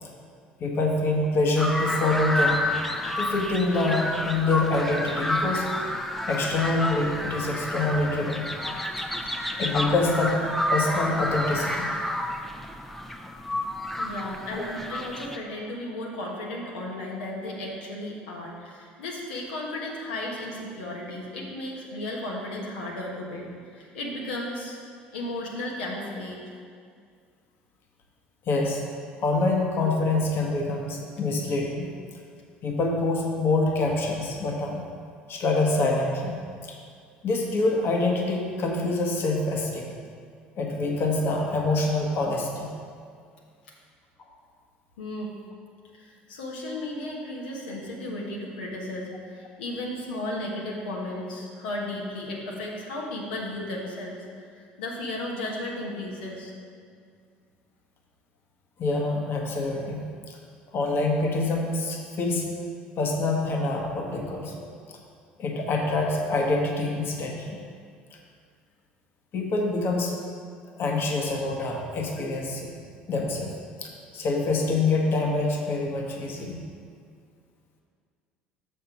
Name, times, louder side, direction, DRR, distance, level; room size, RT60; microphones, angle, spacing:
voice 1, 0.6-2.7 3.2-5.7 6.3-8.5 9.6-10.4 10.7-11.9 14.5-14.7 28.4-28.8 29.2-31.8 32.6-34.8 35.3-36.8 37.2-39.9 40.6-42.7 58.8-60.4 60.7-62.5 63.0-64.5 64.9-65.0 65.4-67.6 69.3-70.2 70.8-72.7 73.1-73.5 73.8-76.6, left 2 dB, 50° left, 0 dB, 1.3 m, -26 dB
sound 1, 1.6-15.4, left 1 dB, 5° left, 0.7 m, -29 dB
voice 2, 14.0-24.8 25.1-26.4 45.0-45.3 45.9-54.2 54.5-56.5, left 1 dB, 80° left, -3 dB, 1.2 m, -34 dB
6.6 x 5.7 x 6.0 m, 2.2 s
hypercardioid pair, 65°, 5 cm